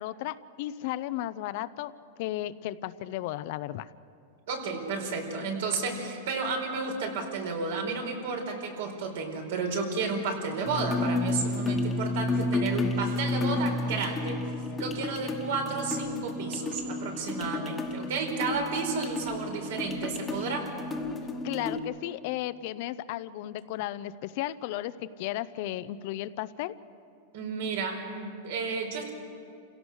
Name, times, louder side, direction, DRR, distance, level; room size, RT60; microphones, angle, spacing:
voice 1, 0.0-1.9 2.2-3.9 21.4-26.7, left 14 dB, 50° left, 14 dB, 0.6 m, -34 dB
voice 2, 4.5-14.4 14.8-20.7 27.3-29.1, right 4 dB, 70° right, 2 dB, 4.6 m, -32 dB
sound 1, 10.6-21.8, left 2 dB, 15° left, 1.3 m, -31 dB
28.0 x 17.0 x 6.4 m, 2.5 s
supercardioid pair, 155°, 0 cm